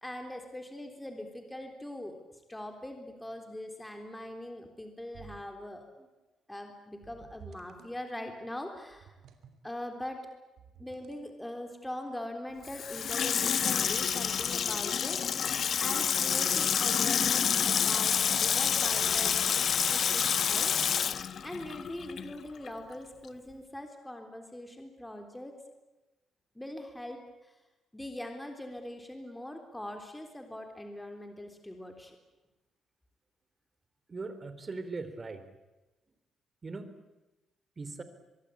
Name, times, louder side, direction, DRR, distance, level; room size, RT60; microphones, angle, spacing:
voice 1, 0.0-2.2 2.5-6.1 6.5-9.1 9.6-10.3 10.8-20.7 21.4-25.6 26.6-27.6 27.9-32.2, left 1 dB, 10° left, 4 dB, 3.7 m, -42 dB
sound 1, 5.1-5.6 7.0-8.0 8.9-9.6 10.6-11.4, right 7 dB, 70° right, 3.0 m, -53 dB
Water tap faucet / Sink (filling or washing), 12.6-22.4 22.7-22.8, left 7 dB, 55° left, 1.1 m, -28 dB
voice 2, 34.1-35.4 36.6-36.9 37.8-38.0, right 3 dB, 30° right, 11 dB, 3.4 m, -39 dB
23.5 x 23.5 x 8.6 m, 1.1 s
cardioid pair, 90°, 0 cm